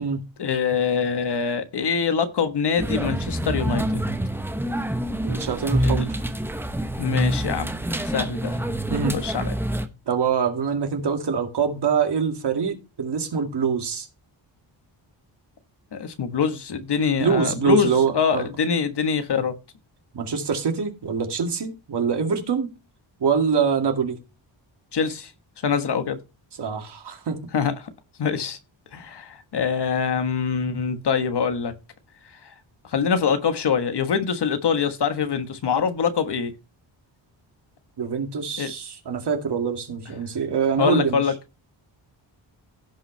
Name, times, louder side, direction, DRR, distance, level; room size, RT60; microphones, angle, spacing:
voice 1, 0.4-4.1 5.8-6.1 7.0-7.8 8.1-8.6 9.1-9.5 15.9-19.5 24.9-25.3 25.6-26.2 27.5-27.9 28.2-28.6 28.9-31.7 32.9-36.5 38.6-38.7 40.8-41.3, left 6 dB, 60° left, 1.4 m, -24 dB
sound 1, 2.8-9.9, right 1 dB, 5° right, 0.9 m, -26 dB
voice 2, 5.2-6.2 8.9-9.2 10.1-14.1 17.2-18.5 20.1-22.7 23.2-24.2 26.6-27.4 38.0-41.2, right 6 dB, 60° right, 2.3 m, -24 dB
16.5 x 5.6 x 3.3 m
wide cardioid pair, 155°, 46 cm